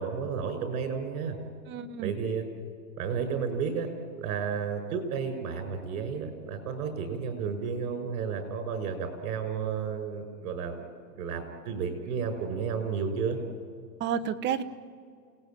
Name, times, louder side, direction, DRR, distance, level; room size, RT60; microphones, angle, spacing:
voice 1, 0.0-1.3 2.0-2.5 3.0-3.9 4.2-10.9 11.2-13.4, right 6 dB, 60° right, 8 dB, 6.2 m, -32 dB
voice 2, 1.7-2.1 14.0-14.6, right 8 dB, 25° right, 10 dB, 1.0 m, -30 dB
29.0 x 19.0 x 9.2 m, 2.2 s
supercardioid pair, 145°, 47 cm